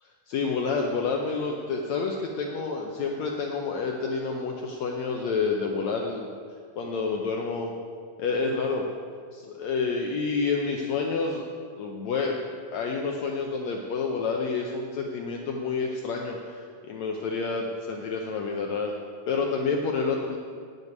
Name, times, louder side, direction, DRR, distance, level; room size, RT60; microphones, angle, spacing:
voice 1, 0.3-6.3 6.8-7.7 8.2-8.9 9.3-11.4 11.8-12.4 12.7-18.9 19.3-20.4, left 4 dB, 85° left, 1 dB, 1.5 m, -29 dB
8.9 x 8.2 x 9.4 m, 2.1 s
omnidirectional pair, 4.3 m